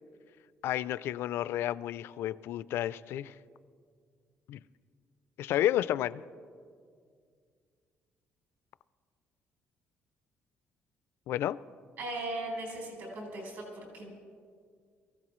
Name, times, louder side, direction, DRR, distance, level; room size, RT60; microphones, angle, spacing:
voice 1, 0.6-3.3 4.5-4.6 5.4-6.2 11.3-11.6, left 12 dB, 65° left, 0.3 m, -31 dB
voice 2, 12.0-14.1, right 2 dB, 60° right, 4.3 m, -38 dB
23.0 x 15.5 x 3.1 m
cardioid pair, 180°, 4 cm